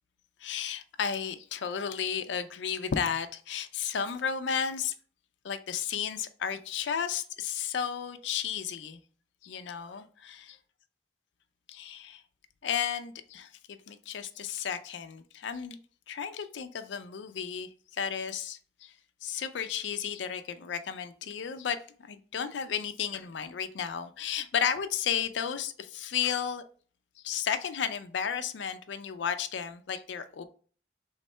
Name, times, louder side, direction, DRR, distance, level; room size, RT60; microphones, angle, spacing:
voice 1, 0.4-4.9 5.4-9.0 9.4-10.6 11.7-12.2 12.6-15.8 16.1-18.9 19.2-26.6 27.2-30.4, left 7 dB, 75° left, 0.4 m, -33 dB
3.5 x 3.2 x 4.2 m
head